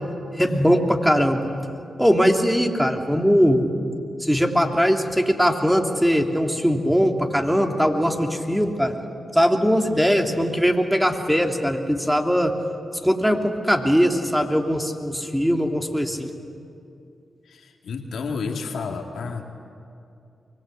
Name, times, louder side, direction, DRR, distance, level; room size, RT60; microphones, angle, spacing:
voice 1, 0.3-1.5 2.0-3.6 4.2-8.9 9.3-12.5 13.0-16.3, equal, 5° right, 3 dB, 2.8 m, -20 dB
voice 2, 17.5-19.4, left 5 dB, 80° left, 3 dB, 2.1 m, -31 dB
24.0 x 20.5 x 8.5 m, 2.6 s
supercardioid pair, 40°, 0 cm